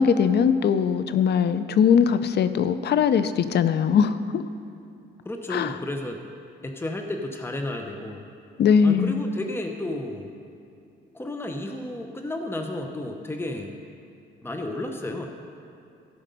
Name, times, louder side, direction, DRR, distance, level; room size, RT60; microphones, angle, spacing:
voice 1, 0.0-4.4 5.5-5.8 8.6-9.2, left 7 dB, 55° left, 12 dB, 0.6 m, -20 dB
voice 2, 5.2-6.2 6.6-8.2 8.8-10.3 11.1-13.8 14.4-15.3, left 1 dB, 10° left, 4 dB, 0.9 m, -32 dB
14.5 x 5.2 x 5.3 m, 2.6 s
cardioid pair, 90°, 20 cm